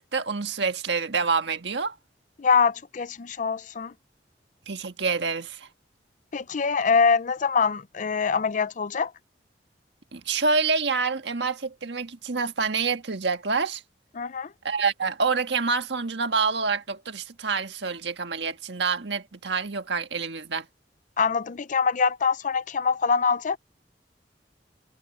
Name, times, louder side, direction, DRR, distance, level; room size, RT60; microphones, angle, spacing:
voice 1, 0.0-2.0 4.7-5.7 10.1-13.8 14.6-20.7, right 4 dB, 75° right, 1.6 m, -27 dB
voice 2, 2.4-3.9 6.3-9.1 14.1-14.5 21.2-23.6, left 5 dB, 45° left, 0.5 m, -24 dB
head